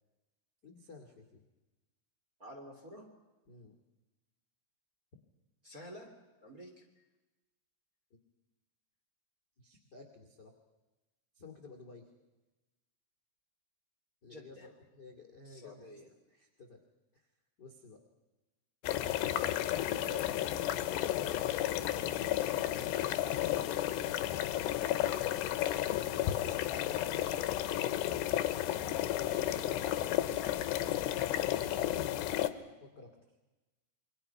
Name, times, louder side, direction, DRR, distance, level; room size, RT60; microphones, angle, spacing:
voice 1, 0.6-1.4 3.4-3.7 8.1-8.2 9.6-10.5 11.3-12.1 14.2-15.9 16.3-16.8 17.1-17.3 17.6-18.0 19.9-22.3 31.4-32.1 32.8-33.2, left 4 dB, 35° left, 2 dB, 1.6 m, -52 dB
voice 2, 2.4-3.1 5.6-6.1 6.4-7.0 14.2-14.7 15.4-16.1 26.9-27.5 28.8-30.5, left 1 dB, 25° right, 3 dB, 2.5 m, -51 dB
sound 1, 18.8-32.5, left 13 dB, 75° left, 2.8 m, -32 dB
28.0 x 24.0 x 5.8 m, 1.1 s
omnidirectional pair, 5.8 m